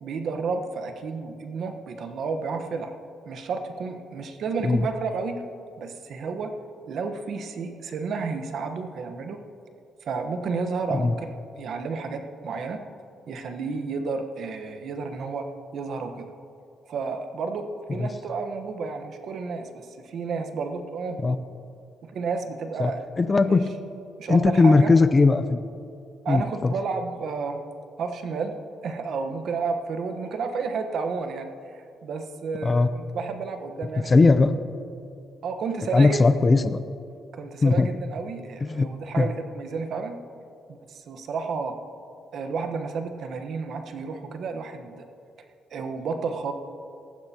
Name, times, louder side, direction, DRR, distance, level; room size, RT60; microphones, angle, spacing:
voice 1, 0.0-2.9 3.3-5.5 5.8-6.6 6.9-9.4 10.0-12.9 13.3-16.3 16.9-21.4 22.0-23.0 23.4-23.6 24.2-24.9 26.2-27.6 28.0-28.6 28.8-34.1 35.4-36.2 37.3-40.2 40.7-41.8 42.3-45.0 45.7-46.5, right 4 dB, 65° right, 7 dB, 1.1 m, -31 dB
voice 2, 23.2-23.7 24.3-25.7 26.3-26.7 32.6-32.9 34.1-34.6 35.9-36.8 37.6-37.9 38.6-38.9 39.2-39.3, left 3 dB, 30° left, 12 dB, 0.6 m, -19 dB
18.5 x 14.5 x 2.9 m, 2.5 s
cardioid pair, 90°, 0 cm